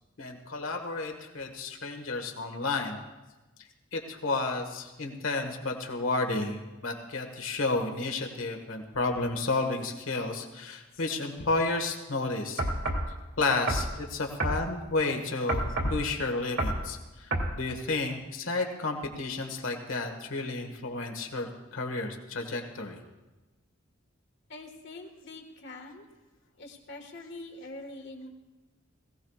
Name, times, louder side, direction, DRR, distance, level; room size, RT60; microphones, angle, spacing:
voice 1, 0.2-3.0 3.9-12.6 13.4-23.0, left 3 dB, 75° left, 4 dB, 1.6 m, -31 dB
sound 1, 12.6-13.1 13.7-13.9 14.4-14.6 15.5-16.0 16.6-16.8 17.3-17.5, right 1 dB, 65° right, 2.2 m, -28 dB
voice 2, 24.5-26.1 26.6-28.3, left 2 dB, 60° left, 3 dB, 1.6 m, -44 dB
20.5 x 16.5 x 2.4 m, 1.1 s
head